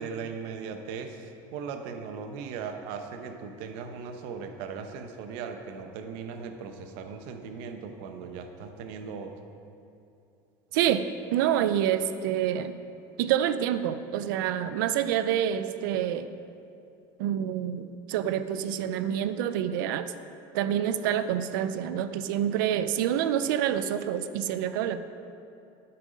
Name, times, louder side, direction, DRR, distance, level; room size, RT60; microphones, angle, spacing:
voice 1, 0.0-9.4, right 5 dB, 60° right, 6 dB, 0.9 m, -38 dB
voice 2, 10.7-12.7 13.2-16.3 17.2-20.1 20.5-25.0, right 10 dB, 90° right, 12 dB, 0.5 m, -27 dB
9.0 x 8.8 x 5.2 m, 2.6 s
cardioid pair, 170°, 10 cm